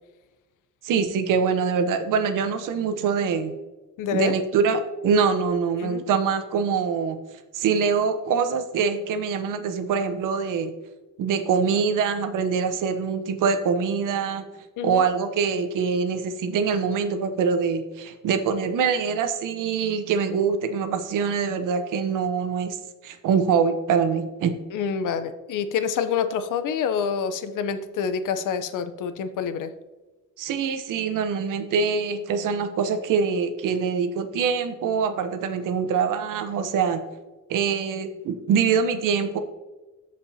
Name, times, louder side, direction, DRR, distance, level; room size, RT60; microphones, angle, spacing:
voice 1, 0.8-3.5 4.1-7.2 7.5-10.7 11.2-14.4 14.8-22.8 23.0-24.5 30.4-37.0 37.5-39.4, right 6 dB, 80° right, 9 dB, 0.9 m, -24 dB
voice 2, 4.0-4.4 5.8-6.0 14.8-15.0 24.7-29.7, left 6 dB, 75° left, 11 dB, 0.7 m, -27 dB
14.0 x 5.3 x 2.8 m, 1.1 s
cardioid pair, 110°, 31 cm